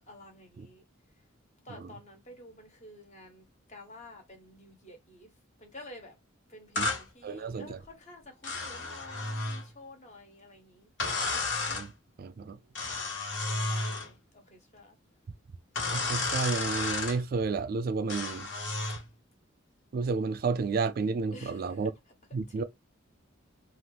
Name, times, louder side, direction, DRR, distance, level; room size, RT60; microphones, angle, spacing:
voice 1, 0.1-0.8 1.6-5.3 5.6-6.2 6.5-10.9 12.5-15.0 21.3-21.9 22.5-22.6, left 1 dB, 35° left, 1.0 m, -51 dB
sound 1, 6.8-7.0 8.4-9.6 11.0-11.9 12.7-14.1 15.8-17.2 18.1-19.0, left 3 dB, 60° left, 1.2 m, -32 dB
voice 2, 7.2-7.8 11.7-11.9 12.2-12.6 15.9-18.5 19.9-21.9 22.3-22.6, right 4 dB, 45° right, 0.3 m, -31 dB
2.8 x 2.4 x 3.3 m
head